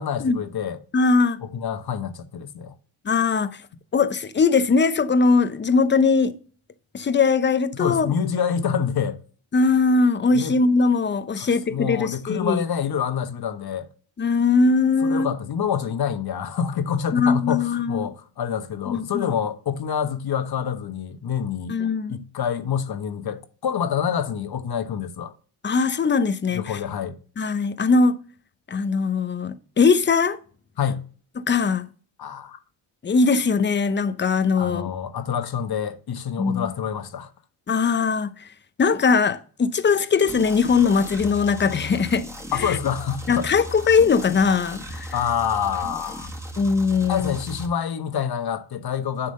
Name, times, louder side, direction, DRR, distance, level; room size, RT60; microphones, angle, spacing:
voice 1, 0.0-0.8 1.4-2.7 7.7-9.2 10.3-10.6 11.4-13.9 15.0-21.7 22.1-25.3 26.5-27.2 30.8-31.0 32.2-32.6 34.6-37.3 42.5-43.5 45.1-46.3 47.1-49.3, left 8 dB, 45° left, 1.2 m, -27 dB
voice 2, 0.9-1.4 3.0-3.6 3.9-6.3 6.9-8.1 9.5-12.6 14.2-15.3 17.1-18.1 18.9-19.2 21.7-22.2 25.6-26.6 27.4-28.2 28.7-30.4 31.5-31.9 33.0-34.9 36.4-36.7 37.7-38.3 38.8-42.3 42.6-42.8 43.3-45.1 46.6-47.3, left 4 dB, 20° left, 0.7 m, -20 dB
sound 1, 40.3-47.7, right 1 dB, 5° right, 1.8 m, -37 dB
10.0 x 3.8 x 6.6 m
cardioid pair, 85°, 50 cm